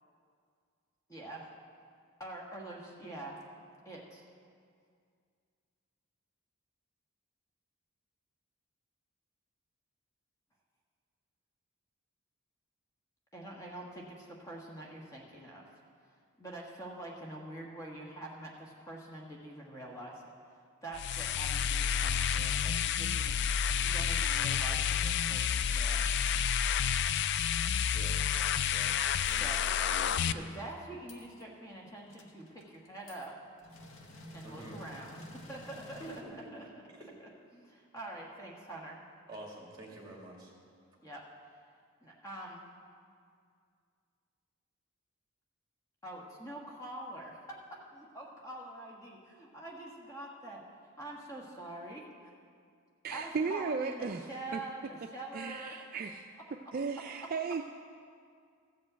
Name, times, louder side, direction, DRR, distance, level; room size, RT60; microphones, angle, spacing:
voice 1, 1.1-1.5 2.2-3.4 3.8-4.3 13.3-15.6 16.4-20.3 20.8-23.4 23.8-26.1 29.4-29.7 30.3-33.3 34.3-36.0 36.3-36.8 37.2-39.0 41.0-41.6 42.0-42.7 46.0-47.4 47.9-50.6 51.0-52.3 53.1-55.8, right 1 dB, 15° left, -2 dB, 1.4 m, -45 dB
sound 1, 20.9-30.3, left 8 dB, 55° left, 0.3 m, -30 dB
voice 2, 27.9-29.0 29.3-29.8 30.1-30.4 34.4-34.8 36.0-36.5 39.3-40.5, right 1 dB, 20° right, -2 dB, 2.2 m, -48 dB
sound 2, 28.2-28.9 29.3-29.5 29.9-30.7 31.1-31.4 31.7-31.8 32.1-33.3 33.6-36.2, left 2 dB, 70° left, 1.1 m, -52 dB
voice 3, 53.0-54.2 54.5-54.6 55.3-56.3 56.7-57.6, right 5 dB, 40° right, 5 dB, 0.3 m, -35 dB
14.0 x 5.3 x 7.9 m, 2.2 s
head